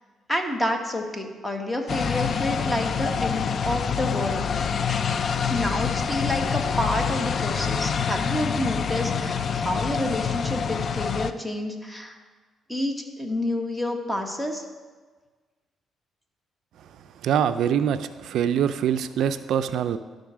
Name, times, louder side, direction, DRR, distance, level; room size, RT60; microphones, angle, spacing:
voice 1, 0.3-4.5 5.5-12.2 12.7-14.6, left 1 dB, 10° left, 3 dB, 1.2 m, -29 dB
sound 1, 1.9-11.3, left 6 dB, 50° left, 0.4 m, -26 dB
voice 2, 17.2-20.0, right 9 dB, 75° right, 11 dB, 0.3 m, -24 dB
11.5 x 3.9 x 6.1 m, 1.4 s
cardioid pair, 90°, 0 cm